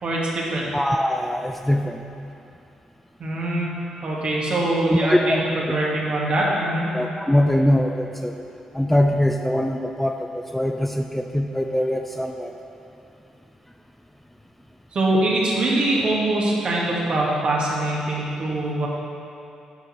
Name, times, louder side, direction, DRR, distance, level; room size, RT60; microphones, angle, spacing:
voice 1, 0.0-0.7 3.2-3.7 4.0-5.4 5.7-6.9 14.9-18.9, right 1 dB, 55° right, -4 dB, 2.2 m, -23 dB
voice 2, 0.7-2.0 4.9-5.4 6.9-8.4 8.7-12.5, left 1 dB, 5° left, 4 dB, 0.5 m, -22 dB
10.5 x 6.1 x 4.4 m, 2.7 s
hypercardioid pair, 45°, 2 cm